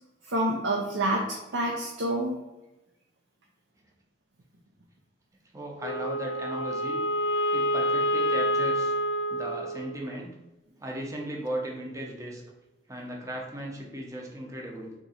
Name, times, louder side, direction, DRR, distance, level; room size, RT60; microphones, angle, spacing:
voice 1, 0.3-2.3, right 1 dB, 80° right, 0 dB, 0.6 m, -28 dB
voice 2, 5.5-7.0 7.5-8.9 9.3-10.3 10.8-12.4 12.9-14.9, right 1 dB, 15° right, -1 dB, 0.6 m, -36 dB
Wind instrument woodwind instrument, 5.8-10.2, equal, 75° left, 0.4 m, -28 dB
3.7 x 2.9 x 4.2 m, 0.98 s
head